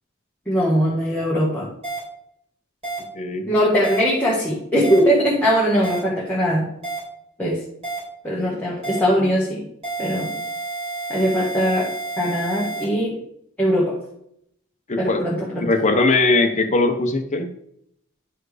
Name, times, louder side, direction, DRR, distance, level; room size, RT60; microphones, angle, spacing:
voice 1, 0.5-1.7 3.5-6.7 7.4-7.6 8.2-9.6 10.0-10.3 11.1-11.9 12.2-13.2 13.6-14.0 15.0-15.7, equal, 5° left, -6 dB, 1.6 m, -20 dB
sound 1, 1.8-2.0 2.8-3.0 3.8-4.0 4.8-5.0 5.8-6.0 6.8-7.0 7.8-8.0 8.8-9.0 9.8-12.8, right 3 dB, 30° right, 3.9 m, -29 dB
voice 2, 3.1-3.5 14.9-17.5, left 2 dB, 35° left, 6 dB, 0.8 m, -20 dB
11.0 x 4.5 x 4.9 m, 0.73 s
head